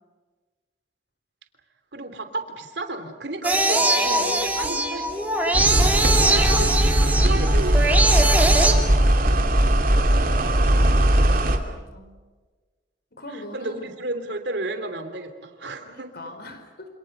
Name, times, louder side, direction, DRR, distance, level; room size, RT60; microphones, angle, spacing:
voice 1, 1.9-5.1 5.4-6.7 7.2-8.4 13.3-16.3, right 2 dB, 70° right, 7 dB, 3.1 m, -33 dB
sound 1, 3.4-8.7, right 2 dB, 10° right, 3.2 m, -22 dB
sound 2, 5.5-11.6, right 1 dB, 50° right, 2.8 m, -19 dB
voice 2, 6.4-6.8 8.9-10.0 10.7-11.0 11.6-12.2 13.2-13.9 15.8-16.9, left 1 dB, 60° left, 7 dB, 4.9 m, -42 dB
28.0 x 27.5 x 6.7 m, 1.3 s
head